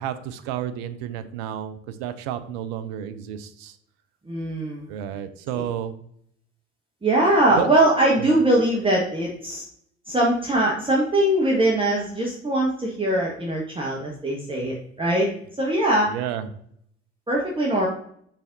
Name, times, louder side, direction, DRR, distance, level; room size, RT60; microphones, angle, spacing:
voice 1, 0.0-3.8 4.9-5.9 7.6-7.7 8.1-8.4 16.1-16.5, right 10 dB, 60° right, 10 dB, 0.7 m, -31 dB
voice 2, 4.2-4.9 5.5-5.6 7.0-9.6 10.1-15.3 15.6-16.1 17.3-17.9, right 1 dB, 15° right, -3 dB, 1.5 m, -21 dB
7.2 x 5.6 x 2.7 m, 0.66 s
figure-of-eight pair, 50°, 34 cm